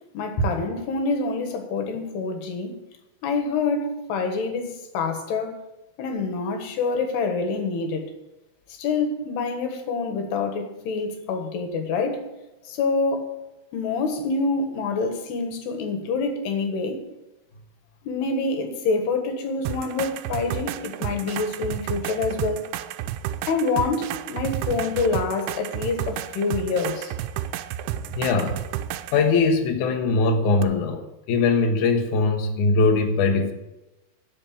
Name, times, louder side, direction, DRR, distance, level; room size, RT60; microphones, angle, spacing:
voice 1, 0.1-2.7 3.2-5.6 6.0-8.1 8.8-12.3 12.7-13.4 13.7-17.0 18.0-22.7 23.5-27.1, left 4 dB, 65° left, 3.1 m, -26 dB
sound 1, 19.7-29.3 30.6-30.7, right 12 dB, 80° right, 2.9 m, -31 dB
voice 2, 28.1-28.6 29.1-31.0 31.3-33.5, left 3 dB, 90° left, 1.7 m, -21 dB
11.0 x 6.5 x 8.7 m
omnidirectional pair, 5.6 m